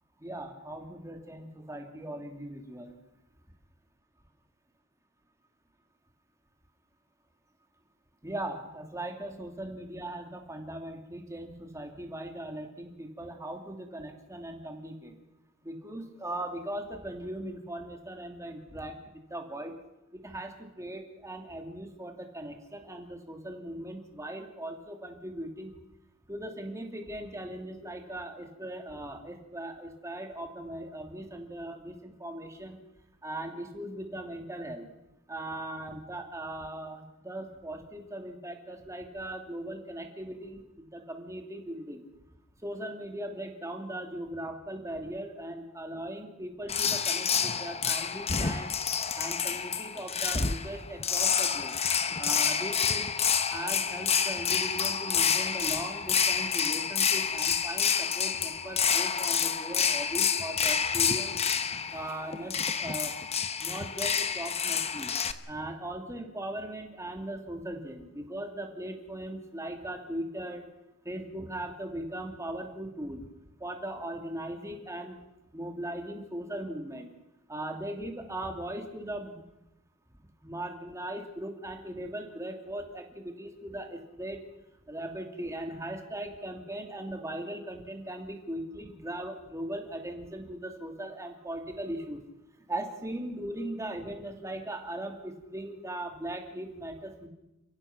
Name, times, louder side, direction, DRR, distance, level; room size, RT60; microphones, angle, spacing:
voice 1, 0.2-2.9 8.2-15.1 15.6-19.7 20.2-25.7 26.3-32.8 33.2-34.9 35.3-42.0 42.6-48.7 49.1-51.8 52.2-53.1 53.5-61.4 61.9-63.1 63.6-65.1 65.5-70.6 71.0-73.2 73.6-75.2 75.5-77.1 77.5-79.4 80.4-84.4 84.9-92.2 92.7-97.3, right 1 dB, 15° right, 3 dB, 2.8 m, -39 dB
sound 1, 46.7-65.3, left 7 dB, 30° left, 1.0 m, -28 dB
29.5 x 16.0 x 6.1 m, 0.94 s
head